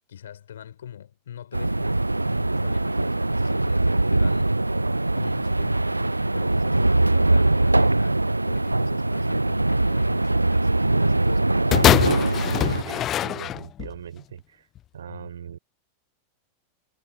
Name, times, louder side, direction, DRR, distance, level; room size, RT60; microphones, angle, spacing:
voice 1, 0.1-4.6 5.1-12.1 12.6-12.9 15.1-15.3, left 9 dB, 65° left, 5.0 m, -43 dB
sound 1, 1.5-12.8, right 2 dB, 85° right, 0.5 m, -22 dB
sound 2, 11.7-14.0 14.8-14.9, left 12 dB, 30° left, 0.5 m, -22 dB
voice 2, 12.8-14.7 14.9-15.6, right 9 dB, 65° right, 5.3 m, -40 dB
figure-of-eight pair, 90°, 0 cm